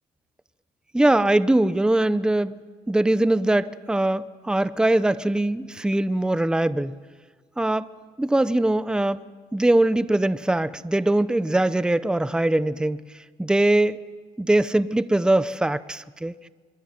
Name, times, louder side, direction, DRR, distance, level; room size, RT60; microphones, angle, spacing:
voice 1, 0.9-2.6 2.9-7.0 7.6-7.9 8.2-9.2 9.5-13.0 13.4-14.0 14.4-16.5, right 1 dB, 5° right, 15 dB, 0.8 m, -21 dB
25.0 x 23.0 x 9.3 m, 1.5 s
cardioid pair, 110°, 17 cm